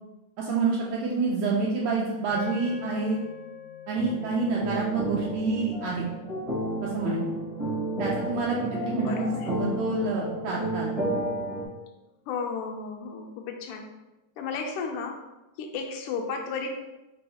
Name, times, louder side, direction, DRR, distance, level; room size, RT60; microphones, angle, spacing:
voice 1, 0.4-3.2 3.9-6.1 6.8-7.3 8.0-11.0, right 3 dB, 80° right, -4 dB, 1.5 m, -28 dB
sound 1, 2.3-10.7, left 8 dB, 65° left, 1.1 m, -47 dB
sound 2, 3.9-11.6, right 1 dB, 60° right, 0.3 m, -31 dB
voice 2, 8.9-9.5 12.3-13.9 14.4-15.2 15.6-16.7, left 5 dB, 85° left, 3 dB, 2.1 m, -33 dB
5.4 x 2.3 x 4.2 m, 0.99 s
omnidirectional pair, 3.6 m